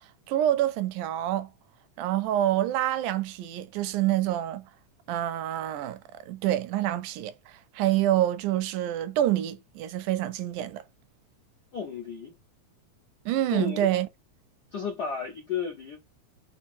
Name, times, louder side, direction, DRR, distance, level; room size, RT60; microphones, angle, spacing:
voice 1, 0.3-1.5 2.0-4.7 5.1-6.0 6.3-10.8 13.3-14.1, right 13 dB, 85° right, 2.1 m, -27 dB
voice 2, 11.7-12.3 13.5-13.9 14.7-16.0, left 6 dB, 70° left, 0.9 m, -33 dB
5.7 x 2.0 x 4.1 m
omnidirectional pair, 3.5 m